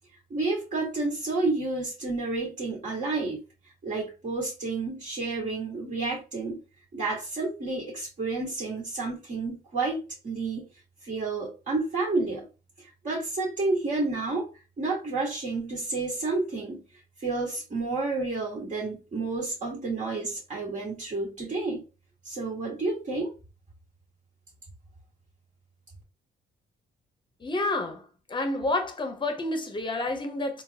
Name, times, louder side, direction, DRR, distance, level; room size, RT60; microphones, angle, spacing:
voice 1, 0.3-3.4 3.8-6.6 6.9-10.6 11.0-12.5 12.8-14.5 14.8-16.8 17.2-21.8 22.2-23.3, right 3 dB, 40° right, 1.5 m, -30 dB
voice 2, 27.4-28.0 28.3-30.6, left 2 dB, 25° left, 0.8 m, -29 dB
3.6 x 2.1 x 2.8 m
cardioid pair, 90°, 20 cm